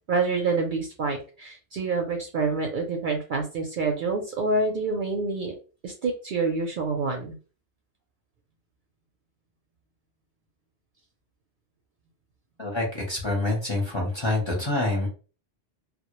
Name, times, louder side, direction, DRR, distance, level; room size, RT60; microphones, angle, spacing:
voice 1, 0.1-5.5 5.8-7.4, right 3 dB, 60° right, 2 dB, 0.6 m, -27 dB
voice 2, 12.6-15.1, left 2 dB, 30° left, -2 dB, 0.7 m, -26 dB
2.1 x 2.1 x 2.9 m, 0.35 s
omnidirectional pair, 1.1 m